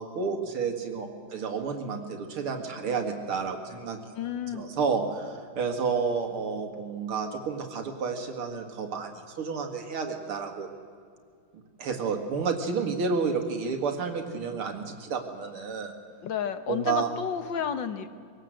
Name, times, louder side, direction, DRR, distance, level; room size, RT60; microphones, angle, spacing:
voice 1, 0.0-4.0 4.5-10.7 11.5-15.9 16.7-17.1, right 5 dB, 85° right, 5 dB, 2.8 m, -30 dB
voice 2, 4.2-4.6 16.2-18.1, left 8 dB, 65° left, 10 dB, 1.6 m, -31 dB
23.0 x 17.5 x 7.7 m, 2.3 s
omnidirectional pair, 2.3 m